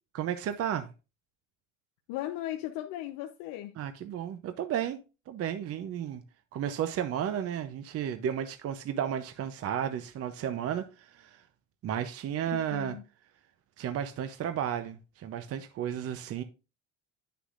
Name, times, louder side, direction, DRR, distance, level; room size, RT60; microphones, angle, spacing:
voice 1, 0.2-0.9 3.8-5.0 5.3-6.2 6.5-11.4 11.8-13.0 13.8-16.4, right 9 dB, 45° right, 0.7 m, -33 dB
voice 2, 2.1-3.7 12.5-13.0, left 13 dB, 80° left, 0.9 m, -37 dB
9.5 x 6.8 x 2.5 m
cardioid pair, 120°, 33 cm